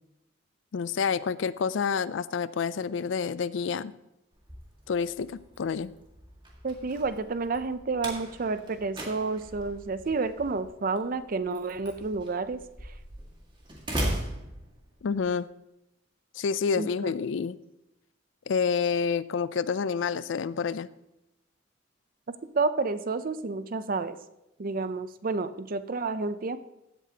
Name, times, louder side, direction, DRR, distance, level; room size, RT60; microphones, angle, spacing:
voice 1, 0.7-3.9 4.9-5.9 15.0-15.5 16.4-17.6 18.5-20.9, left 6 dB, 70° left, 17 dB, 0.4 m, -28 dB
Slam, 4.3-15.2, right 1 dB, 25° right, 1.9 m, -39 dB
voice 2, 6.6-12.9 16.8-17.1 22.5-24.2 24.6-26.6, right 3 dB, 45° right, 12 dB, 0.6 m, -30 dB
15.5 x 8.2 x 2.9 m, 0.90 s
head